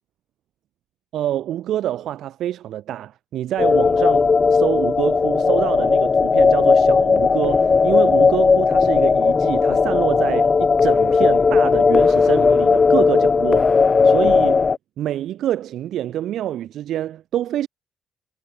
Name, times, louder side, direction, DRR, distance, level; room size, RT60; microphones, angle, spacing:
voice 1, 1.1-14.7 15.0-17.7, right 12 dB, 75° right, 0.5 m, -26 dB
sound 1, 3.6-14.8, left 5 dB, 35° left, 1.2 m, -16 dB
cardioid pair, 90°, 0 cm